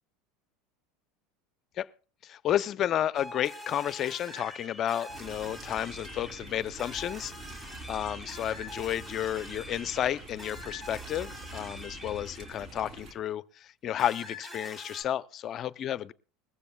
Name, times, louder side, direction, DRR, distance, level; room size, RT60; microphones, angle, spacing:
voice 1, 2.2-16.1, left 11 dB, 40° left, 0.5 m, -32 dB
sound 1, 3.1-12.9 14.0-15.0, left 1 dB, 15° right, 3.7 m, -45 dB
sound 2, 5.1-13.1, right 2 dB, 40° right, 3.3 m, -46 dB
20.5 x 15.0 x 2.3 m
supercardioid pair, 120°, 0 cm